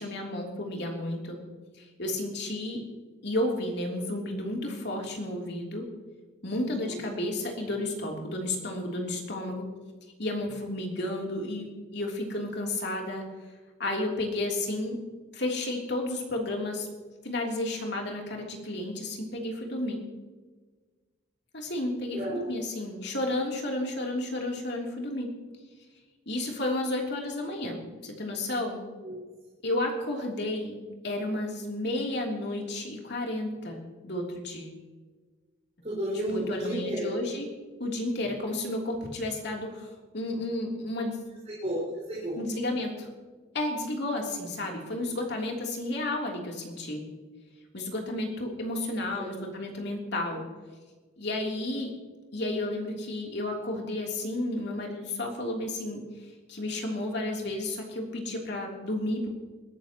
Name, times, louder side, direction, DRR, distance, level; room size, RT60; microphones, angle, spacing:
voice 1, 0.0-1.4 1.7-2.8 3.2-5.9 6.4-9.7 10.2-13.2 13.8-15.0 15.3-16.9 17.2-20.0 21.5-25.3 26.2-28.8 29.6-30.8 31.0-34.7 36.3-37.4 37.8-41.3 42.4-43.1 43.5-47.0 47.7-50.4 51.2-51.9 52.3-59.3, left 1 dB, 55° left, 0 dB, 3.3 m, -32 dB
voice 2, 6.7-7.0 22.1-22.5 29.0-29.2 35.8-37.1 41.4-42.4 49.2-49.4, right 1 dB, 30° right, -7 dB, 5.0 m, -32 dB
22.0 x 13.5 x 3.0 m, 1.3 s
head